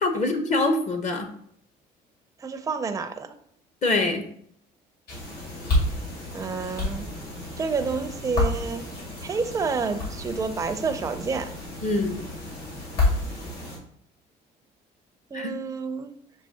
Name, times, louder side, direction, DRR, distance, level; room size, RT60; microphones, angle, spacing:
voice 1, 0.0-1.3 3.8-4.3 11.8-12.2 15.3-15.5, left 2 dB, 45° left, 6 dB, 0.7 m, -24 dB
voice 2, 2.4-3.4 6.3-7.1 7.6-8.8 9.2-11.5 15.3-16.1, right 4 dB, 20° right, 8 dB, 0.4 m, -29 dB
sound 1, 5.1-13.8, left 2 dB, 70° left, 2.0 m, -30 dB
6.4 x 3.0 x 2.8 m, 0.65 s
cardioid pair, 110°, 17 cm